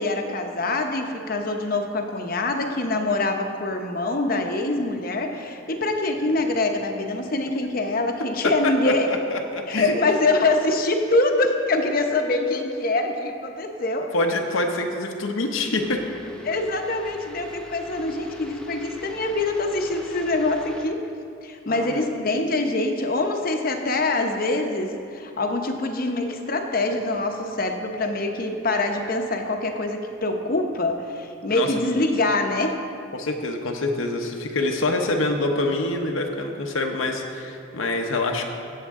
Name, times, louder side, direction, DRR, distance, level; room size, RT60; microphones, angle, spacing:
voice 1, 0.0-9.1 9.7-14.1 16.4-21.0 21.4-32.8, left 2 dB, 45° left, 4 dB, 0.8 m, -24 dB
voice 2, 8.4-9.9 14.1-16.0 21.7-22.1 31.5-31.7 33.1-38.4, left 2 dB, 85° left, 2 dB, 0.9 m, -26 dB
sound 1, 15.7-20.9, left 4 dB, 5° left, 0.7 m, -39 dB
16.0 x 7.5 x 3.6 m, 2.5 s
head